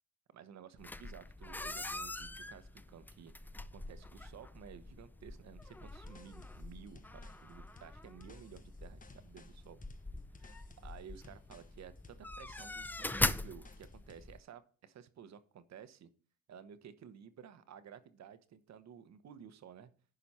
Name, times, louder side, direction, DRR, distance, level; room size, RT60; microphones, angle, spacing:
voice 1, 0.3-9.8 10.4-16.1 16.5-19.9, right 8 dB, 60° right, 12 dB, 1.1 m, -54 dB
sound 1, 0.8-14.4, left 2 dB, 5° left, 0.4 m, -42 dB
sound 2, 5.6-14.3, left 4 dB, 25° left, 0.9 m, -61 dB
10.5 x 5.1 x 4.3 m, 0.42 s
cardioid pair, 90°, 30 cm